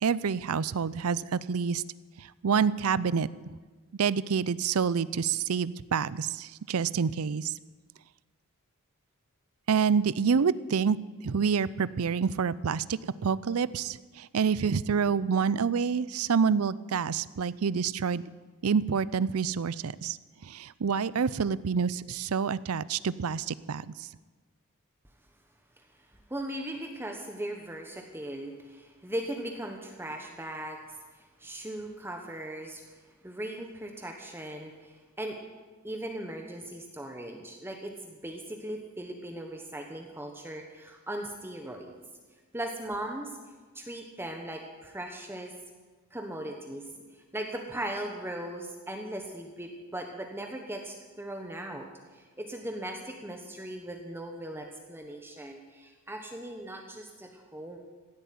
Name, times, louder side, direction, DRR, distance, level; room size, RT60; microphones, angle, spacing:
voice 1, 0.0-1.8 2.2-3.3 4.0-7.5 9.7-11.0 11.2-18.2 18.6-20.2 20.4-24.1, right 6 dB, 80° right, 19 dB, 0.5 m, -27 dB
voice 2, 26.3-32.8 33.2-35.4 35.8-42.0 42.5-43.3 43.7-45.5 46.1-51.9 52.1-57.8, right 1 dB, 10° right, 3 dB, 1.2 m, -38 dB
16.0 x 8.3 x 9.4 m, 1.3 s
head